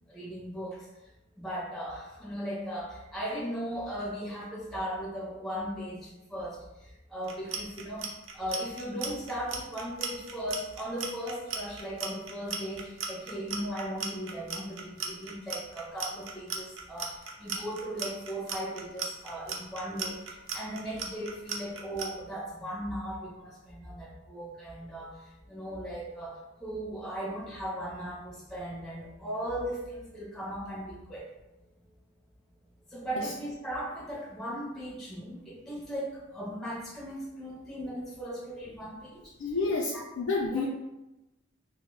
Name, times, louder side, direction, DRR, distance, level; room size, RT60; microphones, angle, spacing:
voice 1, 0.1-0.9 1.4-6.6 7.1-8.1 8.3-20.2 20.5-25.2 25.5-31.2 32.9-39.3 39.9-40.0 40.5-40.6, equal, ahead, -5 dB, 0.5 m, -37 dB
Clock, 7.2-22.1, right 6 dB, 65° right, 0.4 m, -36 dB
voice 2, 39.4-40.6, left 3 dB, 90° left, -3 dB, 0.4 m, -30 dB
2.1 x 2.0 x 3.7 m, 0.97 s
head